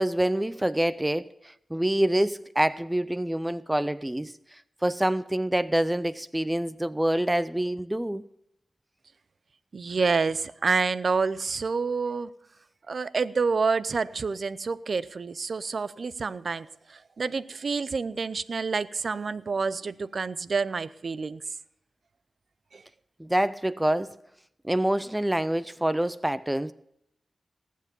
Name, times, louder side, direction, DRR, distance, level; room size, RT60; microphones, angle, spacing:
voice 1, 0.0-8.3 23.2-24.1 24.6-26.7, right 1 dB, 15° right, 0.5 m, -26 dB
voice 2, 9.7-12.3 12.9-21.4 22.7-22.8, right 4 dB, 65° right, 0.6 m, -28 dB
18.5 x 7.5 x 5.3 m
cardioid pair, 45°, 0 cm